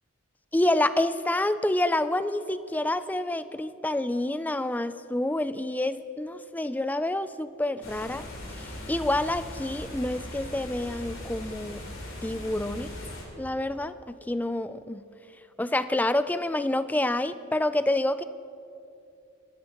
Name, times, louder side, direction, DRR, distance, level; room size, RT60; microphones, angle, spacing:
voice 1, 0.5-8.3 8.6-11.8 12.2-12.9 13.4-15.0 15.6-18.2, left 1 dB, 10° left, 13 dB, 0.3 m, -28 dB
sound 1, 7.8-13.2, left 1 dB, 90° left, 3.8 m, -39 dB
25.0 x 12.5 x 3.0 m, 2.7 s
head